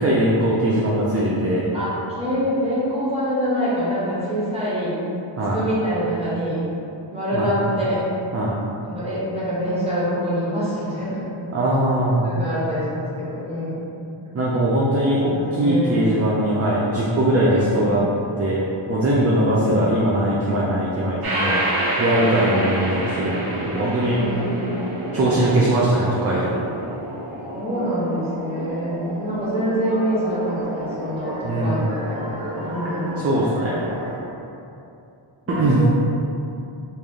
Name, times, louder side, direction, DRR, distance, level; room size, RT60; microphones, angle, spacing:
voice 1, 0.0-1.6 5.4-5.6 7.3-7.7 8.3-8.6 11.5-12.3 14.3-18.0 18.4-21.6 22.0-24.2 25.1-26.5 31.4-31.8 33.2-33.8 35.5-35.8, right 1 dB, 30° right, -6 dB, 0.4 m, -20 dB
voice 2, 1.7-5.0 5.5-6.6 7.1-8.1 8.8-11.3 12.2-13.9 15.3-16.0 17.4-18.4 19.2-19.9 22.2-23.0 24.1-24.7 27.5-33.3 35.5-35.9, equal, 10° right, -9 dB, 1.1 m, -26 dB
sound 1, 21.2-34.2, right 1 dB, 50° right, 1.0 m, -29 dB
3.3 x 2.5 x 3.5 m, 2.7 s
wide cardioid pair, 120°, 48 cm